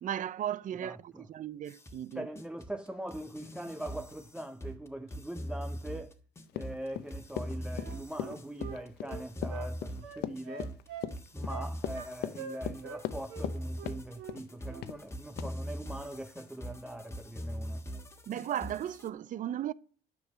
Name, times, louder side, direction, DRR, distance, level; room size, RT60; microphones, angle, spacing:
voice 1, 0.0-2.3 18.3-19.7, right 11 dB, 50° right, 0.6 m, -36 dB
voice 2, 0.8-1.3 2.1-6.2 6.5-10.8 11.3-17.9, right 1 dB, 5° right, 0.7 m, -42 dB
sound 1, 1.7-19.1, equal, 15° left, 1.5 m, -41 dB
Run, 6.5-13.6 13.9-14.5 14.8-15.0 15.4-15.5, left 12 dB, 80° left, 0.8 m, -39 dB
Wind instrument woodwind instrument, 7.7-9.7 10.0-11.1 11.5-12.1 12.3-13.0 13.3-13.5 13.8-14.4 14.7-14.9, right 6 dB, 90° right, 3.2 m, -44 dB
9.8 x 6.8 x 7.1 m
cardioid pair, 110°, 17 cm